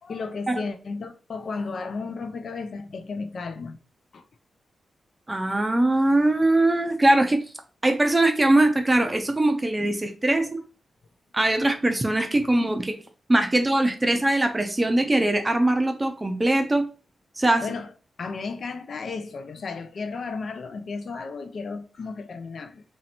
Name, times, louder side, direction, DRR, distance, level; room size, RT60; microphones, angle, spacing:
voice 1, 0.0-3.8 4.1-4.2 8.1-8.2 10.3-10.5 11.6-11.7 17.6-17.9 18.2-22.8, left 4 dB, 55° left, 8 dB, 0.4 m, -34 dB
voice 2, 5.3-7.4 7.8-10.5 11.3-13.0 13.3-16.8 17.4-17.6, right 1 dB, 15° right, 6 dB, 0.5 m, -21 dB
3.0 x 2.8 x 4.1 m, 0.37 s
wide cardioid pair, 130°, 0 cm